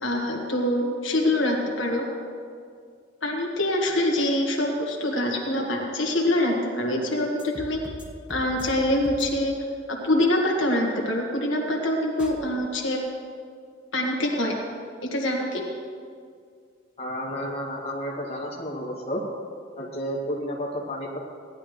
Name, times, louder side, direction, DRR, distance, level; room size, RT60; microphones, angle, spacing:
voice 1, 0.0-2.0 3.2-7.8 8.3-9.6 9.9-13.0 13.9-14.5 15.1-15.6, left 1 dB, 70° left, -1 dB, 1.7 m, -25 dB
sound 1, 7.4-8.0 8.3-8.8 9.0-9.2 12.2-12.3, equal, 5° right, 1.4 m, -39 dB
voice 2, 17.0-19.2 19.8-21.2, equal, 30° left, -4 dB, 2.0 m, -31 dB
18.0 x 11.0 x 3.3 m, 2.1 s
head